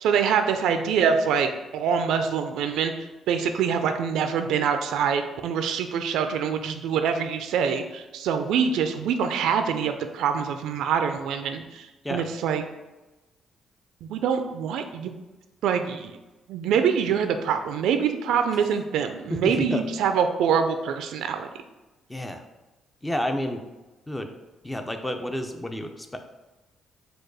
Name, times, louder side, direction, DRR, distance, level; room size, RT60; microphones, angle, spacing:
voice 1, 0.0-12.6 14.0-15.1 15.6-16.1 16.5-21.5, right 7 dB, 85° right, 7 dB, 0.3 m, -25 dB
voice 2, 19.3-19.9 22.1-22.4 23.0-23.6 24.1-24.3 24.6-26.2, left 1 dB, 10° left, 6 dB, 0.5 m, -30 dB
4.6 x 2.3 x 4.6 m, 1.1 s
cardioid pair, 90°, 0 cm